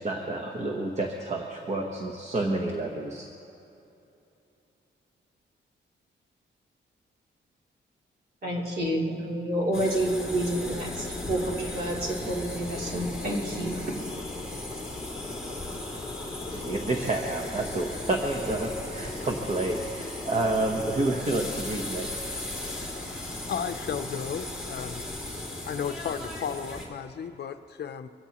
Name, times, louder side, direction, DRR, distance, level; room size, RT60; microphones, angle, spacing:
voice 1, 0.0-3.3 16.5-22.2, right 2 dB, 35° right, 1 dB, 1.0 m, -29 dB
voice 2, 8.4-13.8, right 1 dB, 55° right, -4 dB, 3.1 m, -29 dB
sound 1, 9.7-26.8, left 2 dB, 5° right, 2.8 m, -36 dB
voice 3, 23.5-25.0 25.3-28.1, left 7 dB, 55° left, 9 dB, 0.6 m, -34 dB
23.5 x 16.5 x 3.0 m, 2.9 s
wide cardioid pair, 155°, 20 cm